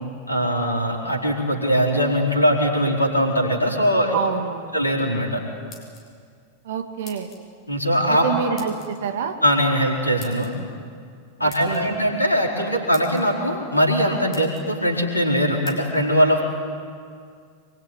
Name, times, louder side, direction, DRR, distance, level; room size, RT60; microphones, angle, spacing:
voice 1, 0.3-4.2 4.7-5.4 7.7-8.2 9.4-10.5 11.4-16.4, equal, 85° left, 0 dB, 4.6 m, -21 dB
voice 2, 4.1-4.7 6.6-7.3 8.1-9.4 11.4-11.9, right 6 dB, 60° right, 7 dB, 2.2 m, -27 dB
sound 1, 5.7-6.3 7.0-7.4 8.6-8.9 10.2-10.5 11.5-11.8 12.5-12.6 12.9-13.2 13.9-14.0 14.3-14.7 15.6-15.8, left 5 dB, 30° left, 7.2 m, -44 dB
25.5 x 23.5 x 9.6 m, 2.2 s
figure-of-eight pair, 90°, 0 cm